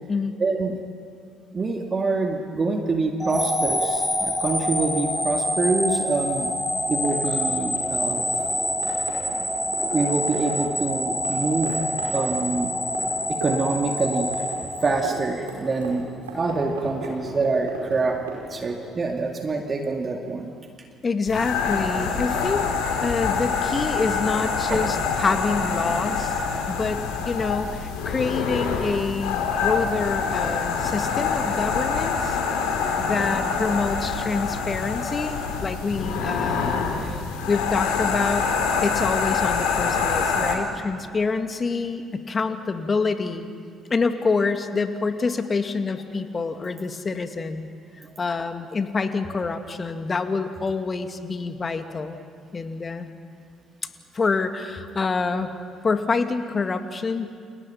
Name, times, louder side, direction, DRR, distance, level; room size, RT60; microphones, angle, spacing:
voice 1, 0.4-0.8 1.5-6.5 6.9-8.2 9.8-11.8 12.1-12.7 13.3-14.3 14.8-16.0 16.3-18.2 18.5-20.5 24.7-24.9 32.5-32.6 37.1-37.3, right 3 dB, 35° right, 2 dB, 2.4 m, -25 dB
sound 1, 3.2-15.4, left 1 dB, 5° left, 7.8 m, -26 dB
sound 2, 6.7-11.3 11.6-11.7 12.0-13.7 14.0-18.8, right 5 dB, 80° right, 5.4 m, -37 dB
voice 2, 21.0-22.7 23.0-26.4 26.7-32.4 33.0-37.2 37.5-38.5 38.8-43.5 43.9-47.7 48.2-52.2 52.5-53.1 54.1-55.5 55.8-57.4, left 4 dB, 35° left, 7 dB, 2.2 m, -26 dB
sound 3, 21.3-40.6, left 5 dB, 70° left, 3.4 m, -25 dB
29.5 x 28.5 x 5.9 m, 2.2 s
figure-of-eight pair, 50°, 0 cm